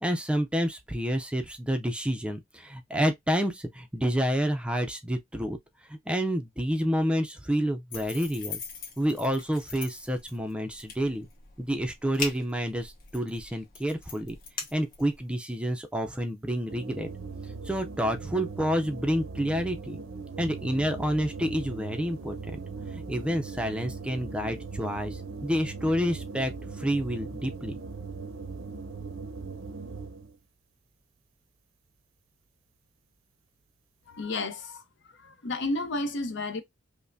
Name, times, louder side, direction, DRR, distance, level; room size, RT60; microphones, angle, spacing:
voice 1, 0.0-5.6 5.9-8.6 9.0-11.3 11.6-14.4 14.7-17.1 17.6-20.0 20.4-22.6 22.9-27.7, equal, 5° right, 0.4 m, -29 dB
sound 1, 7.9-15.3, left 5 dB, 45° left, 1.3 m, -41 dB
sound 2, 16.7-30.4, right 4 dB, 75° right, 0.6 m, -39 dB
voice 2, 34.1-34.8 35.2-36.6, left 2 dB, 60° left, 0.7 m, -31 dB
5.4 x 2.1 x 2.5 m
head